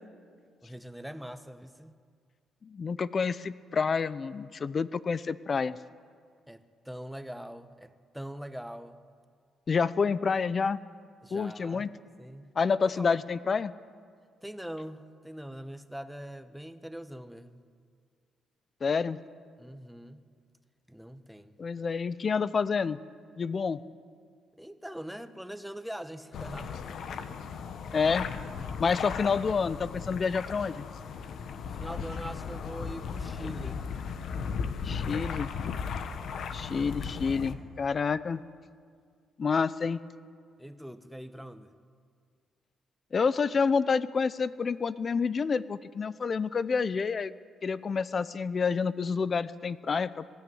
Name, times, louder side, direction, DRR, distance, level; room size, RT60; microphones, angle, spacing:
voice 1, 0.6-2.0 6.5-9.0 11.2-12.5 12.8-13.2 14.4-17.6 19.6-20.3 20.9-21.6 24.6-26.9 31.6-33.9 40.6-41.7, equal, ahead, 10 dB, 1.1 m, -42 dB
voice 2, 2.6-5.8 9.7-10.8 11.3-11.9 12.6-13.7 18.8-19.2 21.6-23.0 23.4-23.8 27.9-28.3 28.8-30.9 34.8-35.5 36.5-38.4 39.4-40.0 43.1-47.3 47.6-50.3, left 5 dB, 40° left, 17 dB, 0.6 m, -28 dB
sound 1, 26.3-37.5, left 6 dB, 65° left, 1.3 m, -36 dB
20.5 x 14.0 x 9.4 m, 2.1 s
cardioid pair, 90°, 0 cm